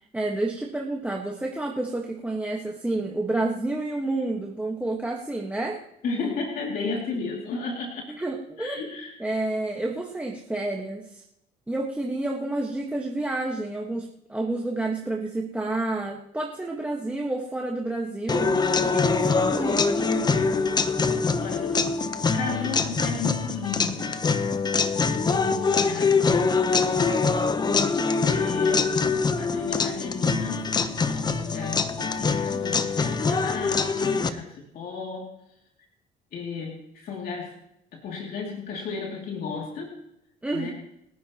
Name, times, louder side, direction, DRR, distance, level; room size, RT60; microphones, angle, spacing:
voice 1, 0.1-5.8 8.1-8.8 9.2-11.2 11.7-20.1 40.4-40.7, right 2 dB, 10° right, -1 dB, 1.4 m, -29 dB
voice 2, 6.0-8.1 8.6-9.2 21.4-21.9 22.3-24.2 24.9-27.3 28.3-28.9 29.3-30.7 31.1-35.3 36.3-37.5 37.9-40.0 40.5-40.7, left 4 dB, 60° left, -1 dB, 2.6 m, -34 dB
sound 1, 18.3-34.3, left 4 dB, 25° left, 0.9 m, -24 dB
30.0 x 10.0 x 3.0 m, 0.80 s
cardioid pair, 110°, 17 cm